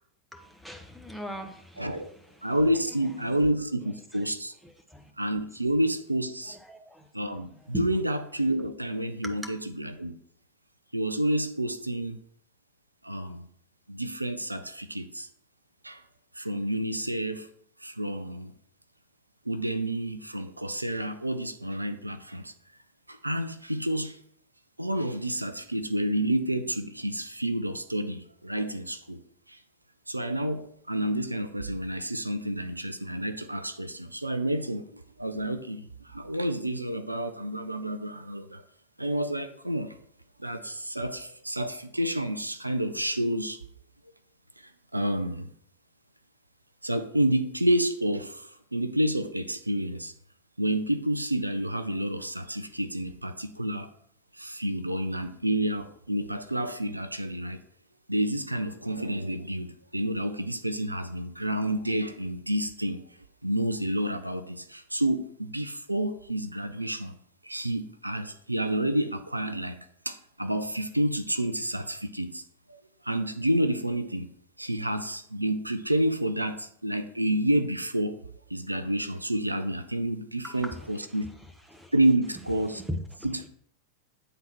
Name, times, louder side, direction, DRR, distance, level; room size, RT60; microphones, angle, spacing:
voice 1, 0.3-2.0 3.2-3.4 4.6-5.1 6.7-7.1 7.7-7.8 9.2-9.5 80.4-80.9 81.2-81.3 81.7-81.9 82.7-83.3, equal, ahead, 1.0 m, -39 dB
voice 2, 1.8-2.1 2.4-4.5 5.2-6.6 7.1-10.2 10.9-12.2 13.0-13.4 13.9-15.3 15.8-16.0 16.3-17.5 17.8-18.5 19.5-22.5 23.1-24.2 24.8-29.2 29.5-29.6 30.1-38.6 39.0-40.0 40.4-43.6 44.6-45.5 46.8-50.1 50.6-53.9 54.3-57.6 58.1-63.0 63.4-67.1 67.4-72.4 72.7-74.3 74.6-78.2 78.5-81.3 81.9-82.8 83.2-83.5, right 1 dB, 85° right, 0.5 m, -29 dB
8.9 x 3.9 x 4.4 m
figure-of-eight pair, 90°, 0 cm